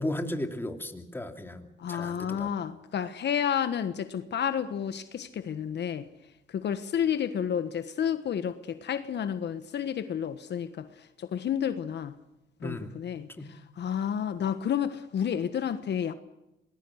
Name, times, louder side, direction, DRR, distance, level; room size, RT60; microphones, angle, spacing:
voice 1, 0.0-2.5 12.6-12.9 13.4-13.5, left 1 dB, 10° left, 5 dB, 2.9 m, -35 dB
voice 2, 1.8-6.1 6.5-12.2 12.6-16.1, left 8 dB, 60° left, 11 dB, 1.4 m, -31 dB
25.0 x 20.5 x 6.5 m, 0.93 s
cardioid pair, 90°, 20 cm